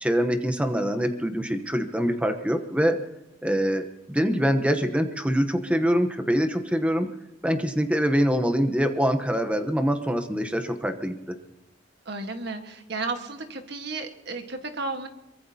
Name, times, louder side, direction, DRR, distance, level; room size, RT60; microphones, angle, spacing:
voice 1, 0.0-3.0 3.4-7.1 7.4-11.4, equal, 5° right, 7 dB, 1.0 m, -24 dB
voice 2, 12.0-15.1, right 3 dB, 65° right, 6 dB, 1.5 m, -33 dB
23.0 x 22.0 x 2.9 m, 0.92 s
head